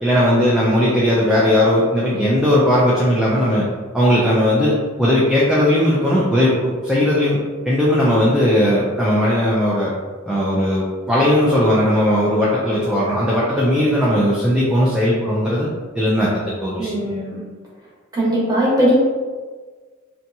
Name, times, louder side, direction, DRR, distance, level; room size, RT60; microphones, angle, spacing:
voice 1, 0.0-3.7 3.9-7.4 7.6-9.9 10.3-15.7 15.9-17.1, left 1 dB, 5° right, -7 dB, 0.3 m, -17 dB
voice 2, 16.8-17.4 18.1-19.0, equal, 20° right, -8 dB, 1.0 m, -19 dB
2.7 x 2.2 x 2.6 m, 1.5 s
head